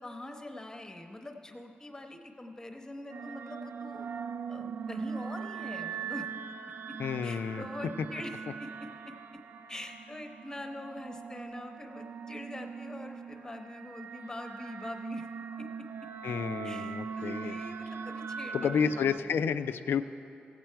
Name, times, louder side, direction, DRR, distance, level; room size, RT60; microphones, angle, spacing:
voice 1, 0.0-4.1 4.5-6.3 6.9-7.0 7.2-9.1 9.7-15.3 15.6-15.7 16.6-19.5, left 1 dB, 15° left, 4 dB, 0.8 m, -44 dB
sound 1, 3.1-19.2, right 6 dB, 80° right, 0.3 m, -41 dB
voice 2, 7.0-7.7 16.2-17.6 18.5-20.0, left 7 dB, 90° left, 11 dB, 0.4 m, -30 dB
16.0 x 7.5 x 4.5 m, 2.7 s
wide cardioid pair, 120°, 4 cm